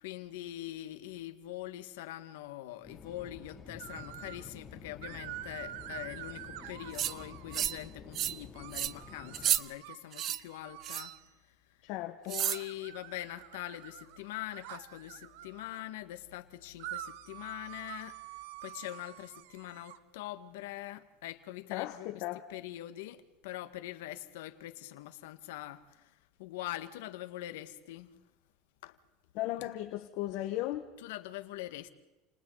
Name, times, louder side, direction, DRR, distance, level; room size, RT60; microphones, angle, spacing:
voice 1, 0.0-11.1 12.2-22.2 22.5-28.2 28.8-29.0 31.0-31.9, left 15 dB, 90° left, 1.8 m, -43 dB
sound 1, 2.8-9.5, left 5 dB, 20° left, 2.9 m, -50 dB
sound 2, 3.8-4.5 5.0-7.8 8.5-11.2 12.4-15.8 16.8-20.0, right 13 dB, 75° right, 1.3 m, -47 dB
sound 3, 6.9-7.1 7.5-7.8 8.1-8.4 8.7-8.9 9.3-9.6 10.1-10.4 10.8-11.1 12.3-12.6, right 11 dB, 40° right, 0.8 m, -31 dB
voice 2, 11.8-12.4 21.7-22.5 29.3-30.9, left 15 dB, 60° left, 1.6 m, -36 dB
30.0 x 29.0 x 4.1 m
supercardioid pair, 145°, 0 cm